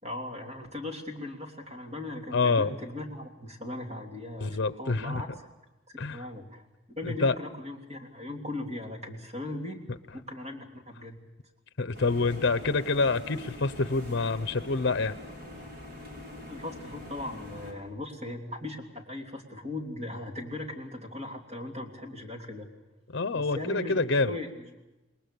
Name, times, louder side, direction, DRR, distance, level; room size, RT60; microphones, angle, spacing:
voice 1, 0.0-5.3 6.1-6.6 7.0-9.8 10.1-11.2 16.4-22.7 23.3-24.0 24.3-24.7, left 1 dB, 35° right, 2 dB, 3.2 m, -38 dB
voice 2, 2.3-2.7 4.4-5.2 6.0-6.3 7.0-7.3 11.8-15.2 23.1-24.3, left 3 dB, 60° left, 13 dB, 0.8 m, -27 dB
sound 1, 11.9-17.7, left 1 dB, 50° right, 5.8 m, -44 dB
28.0 x 20.5 x 6.9 m, 1.0 s
head